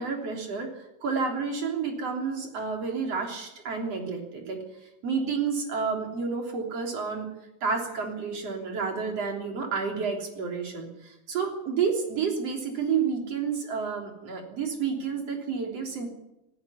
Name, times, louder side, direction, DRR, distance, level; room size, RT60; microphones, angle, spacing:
voice 1, 0.0-4.6 5.0-7.3 7.6-16.1, right 5 dB, 45° right, 2 dB, 4.2 m, -30 dB
17.5 x 15.5 x 9.7 m, 0.90 s
omnidirectional pair, 4.1 m